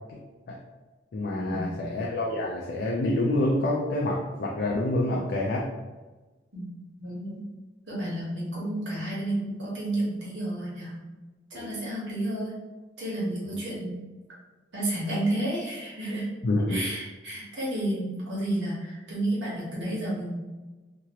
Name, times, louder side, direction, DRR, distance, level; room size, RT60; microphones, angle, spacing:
voice 1, 1.1-5.7 11.5-11.7 13.5-13.6 16.4-16.8, left 1 dB, 60° left, -3 dB, 0.4 m, -27 dB
voice 2, 7.0-7.5 7.9-11.0 11.5-12.5 13.0-14.0 14.7-16.3 16.7-20.3, right 1 dB, 80° right, -7 dB, 1.3 m, -31 dB
2.8 x 2.5 x 2.9 m, 1.2 s
head